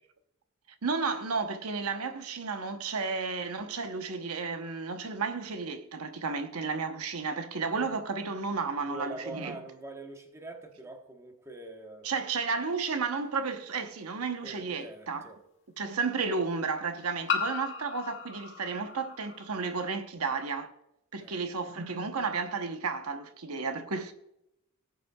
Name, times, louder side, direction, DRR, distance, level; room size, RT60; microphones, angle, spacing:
voice 1, 0.8-9.5 12.0-15.3 15.8-20.7 21.1-24.1, right 4 dB, 90° right, 0.9 m, -32 dB
voice 2, 8.8-12.1 14.4-15.4 21.2-21.4, right 2 dB, 15° right, 1.1 m, -44 dB
sound 1, 13.3-13.4 15.1-15.2 17.3-19.8, left 6 dB, 60° left, 1.3 m, -35 dB
18.0 x 8.2 x 2.3 m
head